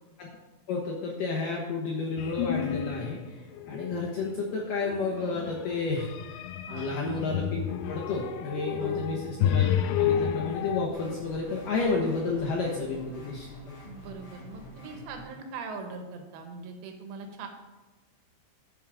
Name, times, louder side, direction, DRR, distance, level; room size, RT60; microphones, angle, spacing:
voice 1, 0.7-6.4 6.7-7.6 7.9-9.7 10.0-13.8, left 3 dB, 70° left, -2 dB, 2.1 m, -31 dB
sound 1, 2.2-3.2 3.5-4.1 4.9-10.9, left 9 dB, 85° left, 2.3 m, -30 dB
sound 2, 10.9-15.3, left 1 dB, 50° left, 3.0 m, -47 dB
voice 2, 13.8-17.5, right 4 dB, 85° right, 5 dB, 3.9 m, -41 dB
11.0 x 8.0 x 5.0 m, 1.2 s
omnidirectional pair, 5.4 m